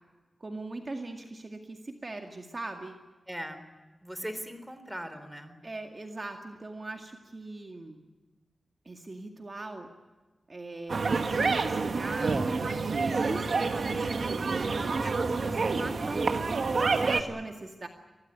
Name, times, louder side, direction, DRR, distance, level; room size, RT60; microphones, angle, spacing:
voice 1, 0.4-3.0 5.6-8.0 8.9-9.9 10.5-17.9, right 2 dB, 40° right, 4 dB, 2.1 m, -40 dB
voice 2, 3.3-3.6 4.0-5.6 15.4-15.9, equal, 5° right, 10 dB, 3.8 m, -40 dB
sound 1, 10.9-17.2, right 4 dB, 65° right, 2.0 m, -28 dB
24.5 x 18.0 x 9.6 m, 1.2 s
wide cardioid pair, 85°, 0 cm